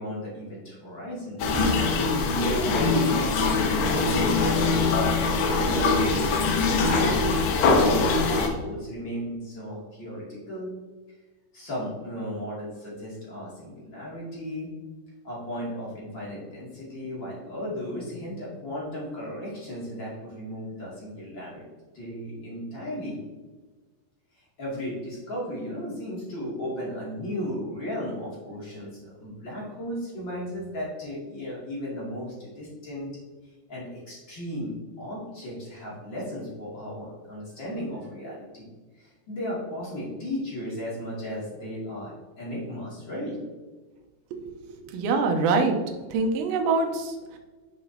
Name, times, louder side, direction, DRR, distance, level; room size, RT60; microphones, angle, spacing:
voice 1, 0.0-1.4 2.2-10.7 11.5-14.7 15.2-21.7 21.9-23.2 24.6-33.1 33.7-38.7 39.0-43.4, equal, 35° left, -6 dB, 2.2 m, -35 dB
sound 1, 1.4-8.5, left 3 dB, 75° left, 3.2 m, -22 dB
voice 2, 44.4-45.8 46.1-47.4, right 4 dB, 85° right, 4 dB, 3.0 m, -25 dB
9.6 x 5.6 x 2.8 m, 1.3 s
omnidirectional pair, 5.3 m